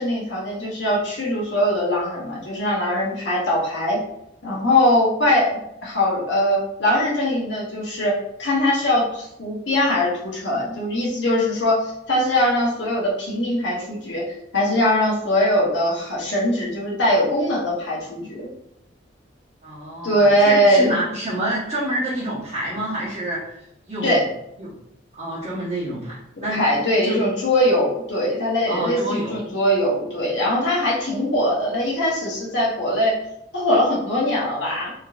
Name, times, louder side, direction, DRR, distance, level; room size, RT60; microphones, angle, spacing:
voice 1, 0.0-4.0 4.4-8.1 8.4-14.2 14.5-18.5 20.0-20.9 24.0-24.3 26.5-33.2 33.5-34.9, left 1 dB, 65° left, -4 dB, 0.9 m, -21 dB
voice 2, 19.6-23.5 23.9-24.3 24.6-24.7 25.2-26.6 27.0-27.2 28.7-29.4, right 1 dB, 35° right, -10 dB, 0.9 m, -27 dB
3.5 x 2.8 x 2.3 m, 0.80 s
head